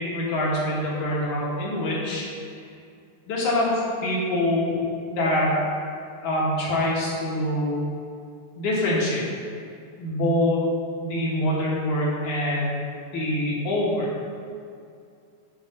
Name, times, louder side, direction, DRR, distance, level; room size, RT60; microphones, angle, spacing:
voice 1, 0.0-2.2 3.3-4.8 5.1-5.6 6.2-7.8 8.6-9.2 10.0-10.6 11.0-12.8 13.1-14.1, left 1 dB, 60° left, -5 dB, 2.6 m, -24 dB
7.5 x 5.1 x 5.4 m, 2.4 s
omnidirectional pair, 4.2 m